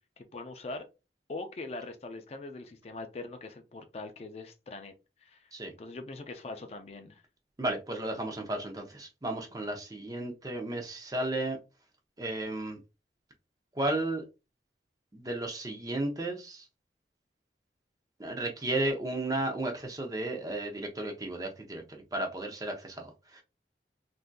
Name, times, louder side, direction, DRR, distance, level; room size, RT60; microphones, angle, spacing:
voice 1, 0.2-0.8 1.3-4.9 5.2-5.5 5.8-7.2, left 2 dB, 35° left, 0.4 m, -42 dB
voice 2, 7.6-11.6 12.2-12.8 13.8-14.2 15.1-16.7 18.2-23.4, right 1 dB, 20° right, 0.5 m, -34 dB
3.5 x 2.6 x 2.2 m
head